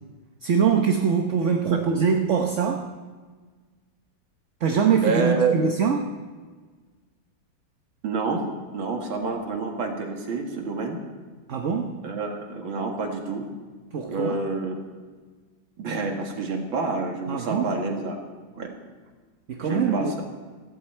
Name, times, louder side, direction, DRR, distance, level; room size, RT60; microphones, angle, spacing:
voice 1, 0.4-2.9 4.6-6.2 11.5-12.1 13.9-14.4 17.3-17.8 19.5-20.2, right 6 dB, 50° right, 4 dB, 1.0 m, -23 dB
voice 2, 5.0-5.6 8.0-8.4 8.7-11.0 12.0-13.5 14.1-14.8 15.8-18.2 18.6-18.8 19.6-20.2, right 4 dB, 80° right, 2 dB, 2.6 m, -28 dB
16.5 x 15.0 x 4.5 m, 1.4 s
omnidirectional pair, 2.1 m